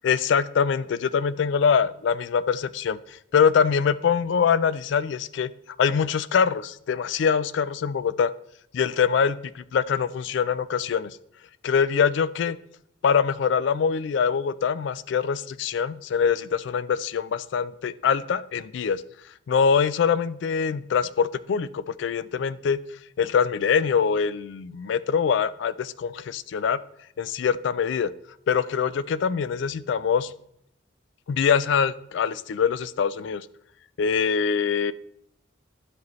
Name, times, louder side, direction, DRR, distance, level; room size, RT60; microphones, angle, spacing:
voice 1, 0.0-5.5 5.8-8.3 8.7-11.2 11.6-12.6 13.0-19.0 19.5-22.8 23.2-26.8 27.2-28.1 28.5-30.3 31.3-33.5 34.0-34.9, left 6 dB, 65° left, 16 dB, 0.3 m, -24 dB
12.5 x 4.8 x 3.1 m, 0.73 s
head